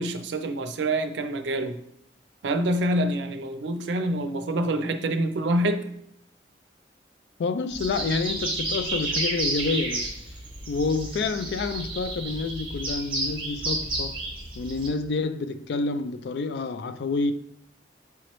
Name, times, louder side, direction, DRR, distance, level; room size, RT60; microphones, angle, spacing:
voice 1, 0.0-1.8 2.4-5.9, right 1 dB, 90° right, 0.5 m, -26 dB
voice 2, 7.4-10.1 10.7-14.2 14.6-17.3, left 4 dB, 70° left, 0.3 m, -28 dB
sound 1, 7.7-14.9, right 2 dB, 30° right, 1.0 m, -31 dB
4.7 x 3.1 x 3.0 m
head